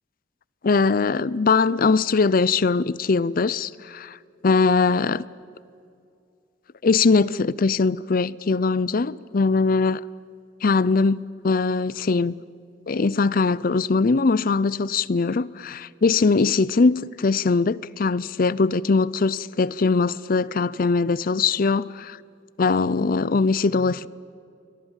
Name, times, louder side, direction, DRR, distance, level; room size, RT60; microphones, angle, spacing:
voice 1, 0.6-4.2 4.4-5.2 6.8-10.0 10.6-12.3 12.9-22.2 22.6-24.1, left 4 dB, 50° left, 0.5 m, -21 dB
29.0 x 23.0 x 7.3 m
head